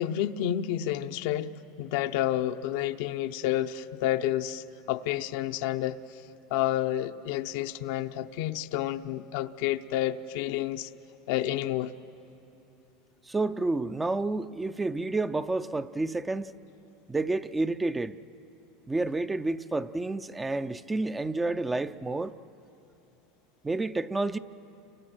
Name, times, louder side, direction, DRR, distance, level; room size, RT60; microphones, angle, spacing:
voice 1, 0.0-1.5 1.8-6.0 6.5-10.9 11.3-11.9, left 12 dB, 70° left, 0.8 m, -30 dB
voice 2, 13.3-16.5 17.1-18.2 18.9-22.3 23.6-24.4, right 2 dB, 15° right, 0.6 m, -29 dB
29.5 x 24.0 x 6.3 m
supercardioid pair, 105°, 0 cm